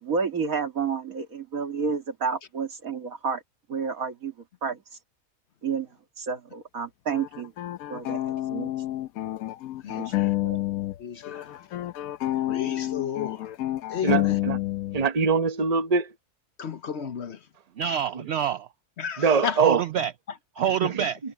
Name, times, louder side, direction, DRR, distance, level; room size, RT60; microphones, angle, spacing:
voice 1, 0.0-3.4 3.7-4.3 4.6-4.8 5.6-5.9 6.2-7.5 7.9-8.7 10.0-10.6, right 5 dB, 85° right, 2.5 m, -30 dB
sound 1, 7.1-11.0 11.2-15.1, left 15 dB, 90° left, 1.1 m, -29 dB
voice 2, 9.8-10.3 11.0-11.6 12.5-13.5 13.9-14.4 16.6-17.4 19.0-19.6, left 8 dB, 55° left, 1.0 m, -33 dB
voice 3, 14.0-14.6 14.9-16.1 19.2-19.8, right 5 dB, 30° right, 0.9 m, -22 dB
voice 4, 17.8-18.7 19.2-19.3 19.6-20.1 20.6-21.2, right 9 dB, 60° right, 0.8 m, -27 dB
omnidirectional pair, 1.4 m